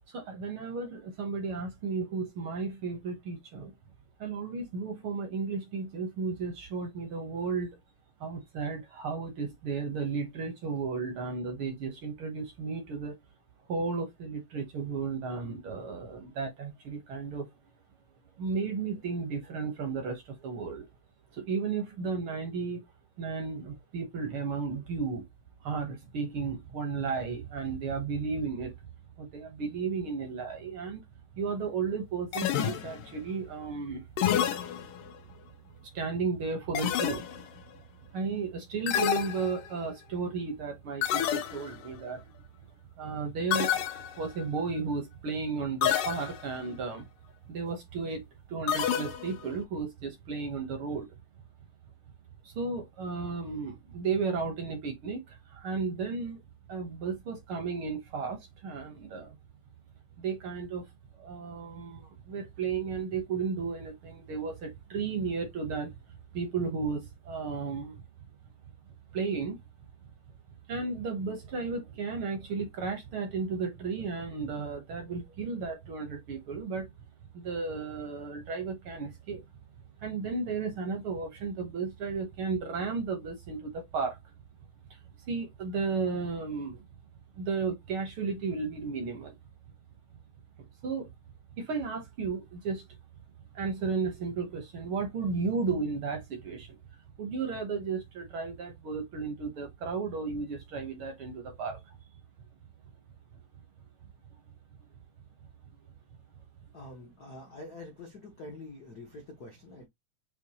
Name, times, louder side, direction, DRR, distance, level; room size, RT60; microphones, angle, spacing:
voice 1, 0.1-3.7 4.2-7.7 8.2-13.1 13.7-17.5 18.4-20.9 21.3-22.8 23.2-25.2 25.6-28.7 29.2-31.0 31.3-34.0 35.8-37.2 38.1-42.2 43.0-47.1 47.5-48.2 48.5-51.1 52.4-56.4 56.7-59.4 60.2-60.9 61.2-66.0 66.3-68.0 69.1-69.6 70.7-76.9 77.3-79.4 80.0-84.3 84.9-85.0 85.3-86.9 87.3-89.4 90.8-91.1 91.6-92.8 93.5-96.8 97.2-102.0, right 4 dB, 65° right, 1.3 m, -34 dB
sound 1, 32.3-33.2 34.2-35.2 36.8-37.6 38.9-39.9 41.0-41.9 43.5-44.4 45.8-46.6 48.7-49.5, left 10 dB, 85° left, 2.4 m, -29 dB
voice 2, 106.7-109.9, left 2 dB, 65° left, 0.9 m, -46 dB
7.0 x 2.3 x 2.9 m
omnidirectional pair, 3.7 m